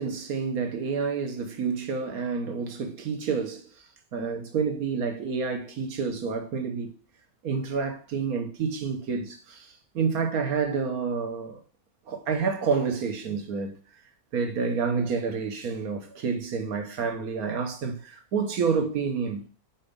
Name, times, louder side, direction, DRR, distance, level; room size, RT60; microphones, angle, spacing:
voice 1, 0.0-3.6 4.1-6.9 7.4-11.6 12.1-13.8 14.3-19.4, right 5 dB, 75° right, 1.5 m, -29 dB
5.4 x 4.3 x 5.2 m
omnidirectional pair, 1.6 m